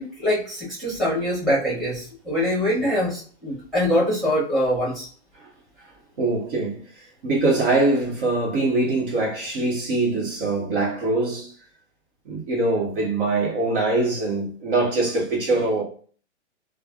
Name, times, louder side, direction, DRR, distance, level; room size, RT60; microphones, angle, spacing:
voice 1, 0.0-5.1, equal, ahead, 1.4 m, -24 dB
voice 2, 6.2-11.5 12.2-15.8, right 2 dB, 50° right, 1.2 m, -23 dB
3.1 x 2.3 x 2.4 m
hypercardioid pair, 145°, 36 cm